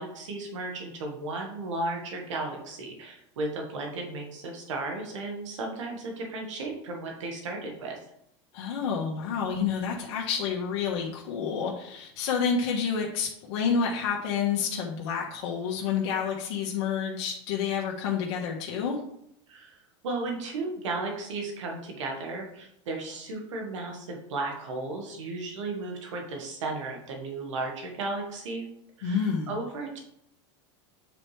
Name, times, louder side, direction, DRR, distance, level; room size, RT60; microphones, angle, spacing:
voice 1, 0.0-8.0 19.5-28.7 29.0-30.0, right 2 dB, 85° right, 1 dB, 1.6 m, -35 dB
voice 2, 8.5-19.0 29.0-29.5, left 6 dB, 65° left, -2 dB, 1.4 m, -29 dB
8.6 x 4.6 x 3.3 m, 0.75 s
supercardioid pair, 115°, 15 cm